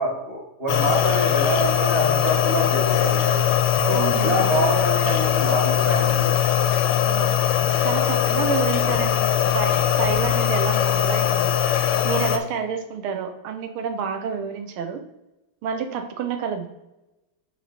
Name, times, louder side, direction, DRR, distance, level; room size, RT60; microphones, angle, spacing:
voice 1, 0.0-3.4 3.9-6.3, right 1 dB, 30° right, -2 dB, 1.3 m, -26 dB
sound 1, 0.7-12.4, left 10 dB, 70° left, 1.2 m, -21 dB
voice 2, 3.9-4.5 7.0-7.4 7.8-11.5 12.0-15.0 15.6-16.7, right 6 dB, 85° right, 6 dB, 1.7 m, -29 dB
8.5 x 3.1 x 4.2 m, 0.97 s
omnidirectional pair, 2.3 m